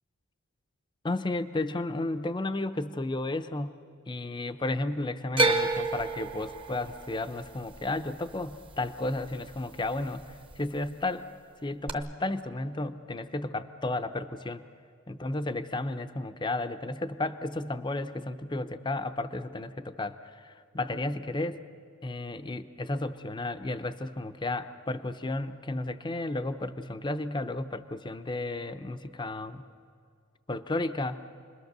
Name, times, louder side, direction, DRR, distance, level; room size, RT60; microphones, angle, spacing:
voice 1, 1.0-3.8 4.1-11.3 11.6-14.6 15.1-21.6 22.0-29.6 30.5-31.2, left 2 dB, 20° left, 11 dB, 0.7 m, -33 dB
sound 1, 5.4-9.6 9.8-10.5 11.9-12.0, right 3 dB, 25° right, 0.9 m, -30 dB
29.0 x 21.5 x 6.7 m, 2.4 s
head